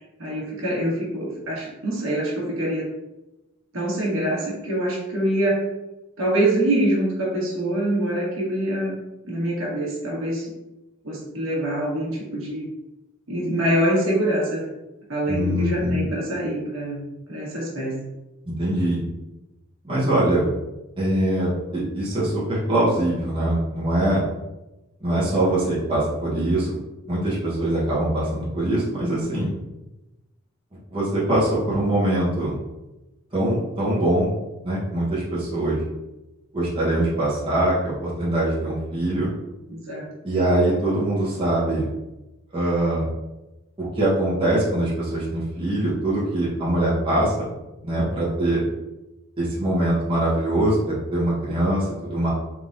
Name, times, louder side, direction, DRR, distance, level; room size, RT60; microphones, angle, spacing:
voice 1, 0.2-2.9 3.7-5.6 6.2-9.0 9.2-10.5 11.0-12.7 13.3-14.6 15.1-17.0 17.3-17.9 39.7-40.1, right 1 dB, 70° right, -5 dB, 1.3 m, -25 dB
voice 2, 15.3-16.0 18.5-19.0 19.8-20.5 21.0-24.2 25.0-26.8 27.1-29.5 30.9-32.6 33.3-34.4 34.6-35.8 36.5-39.3 40.2-41.9 42.5-43.0 43.8-47.5 47.8-48.6 49.4-52.3, right 1 dB, 25° right, -8 dB, 1.1 m, -23 dB
3.6 x 3.4 x 2.6 m, 0.99 s
head